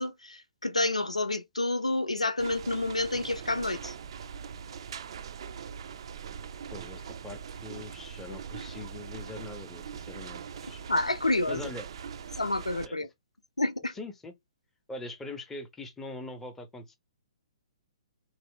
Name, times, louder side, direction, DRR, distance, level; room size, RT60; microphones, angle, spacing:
voice 1, 0.0-3.9 10.9-11.6 12.4-13.1 13.6-13.9, left 2 dB, 85° left, 0.6 m, -29 dB
sound 1, 2.4-12.9, right 7 dB, 50° right, 0.4 m, -42 dB
voice 2, 6.7-10.8 11.5-11.9 12.8-13.1 13.9-14.3 14.9-17.0, left 2 dB, 10° left, 0.6 m, -42 dB
3.1 x 2.0 x 3.8 m
figure-of-eight pair, 125°, 3 cm